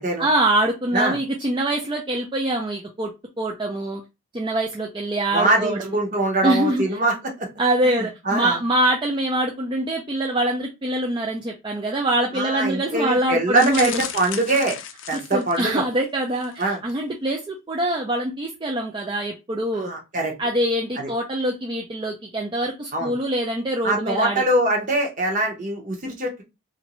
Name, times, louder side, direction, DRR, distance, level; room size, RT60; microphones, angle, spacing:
voice 1, 0.2-3.1 3.4-4.0 4.3-6.0 6.4-6.8 7.6-14.0 15.1-19.9 20.4-24.4, right 1 dB, 25° right, 0.4 m, -24 dB
voice 2, 5.3-7.5 7.8-8.6 12.3-14.8 15.1-15.8 16.6-16.8 19.8-20.3 21.0-21.1 22.9-23.1 23.8-26.4, right 2 dB, 40° right, 0.9 m, -23 dB
sound 1, 13.5-15.8 16.4-16.6 16.9-17.0, left 9 dB, 65° left, 0.4 m, -34 dB
3.0 x 2.6 x 2.9 m
head